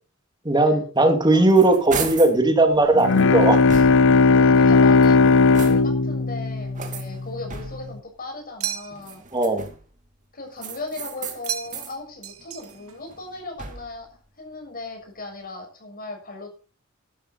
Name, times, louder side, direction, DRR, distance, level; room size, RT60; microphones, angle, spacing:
voice 1, 0.4-3.6 9.3-9.7, right 2 dB, 20° right, 6 dB, 2.6 m, -18 dB
voice 2, 1.0-1.5 4.2-9.2 10.3-14.1 14.4-16.5, left 2 dB, 45° left, 3 dB, 7.0 m, -37 dB
sound 1, 1.1-2.4 3.0-4.3 4.9-6.1 6.7-8.0 8.9-9.9 10.6-12.0 12.4-14.0, right 5 dB, 35° right, 2.6 m, -36 dB
Bowed string instrument, 2.9-7.5, left 4 dB, 65° left, 0.7 m, -17 dB
sound 2, 8.6-9.2 11.5-12.0 12.2-13.0, right 11 dB, 80° right, 1.8 m, -33 dB
13.5 x 12.5 x 4.3 m, 0.34 s
head